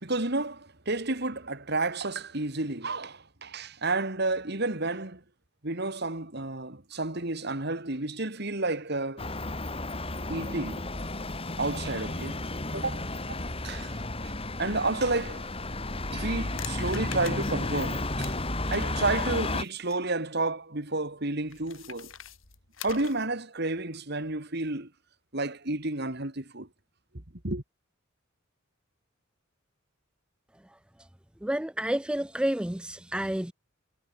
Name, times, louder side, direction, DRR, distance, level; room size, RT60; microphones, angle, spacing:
voice 1, 0.0-5.2 5.6-9.3 10.3-10.8 11.6-12.4 12.7-13.1 13.6-14.0 14.6-15.5 16.1-18.4 18.7-22.1 22.8-24.9 25.3-26.7 27.4-27.6, right 2 dB, 55° right, 3.1 m, -31 dB
sound 1, 9.2-19.6, left 2 dB, 30° left, 3.1 m, -33 dB
sound 2, 16.0-20.1 21.5-23.3, left 10 dB, 75° left, 3.5 m, -46 dB
voice 2, 31.4-33.5, right 1 dB, 5° right, 0.4 m, -29 dB
head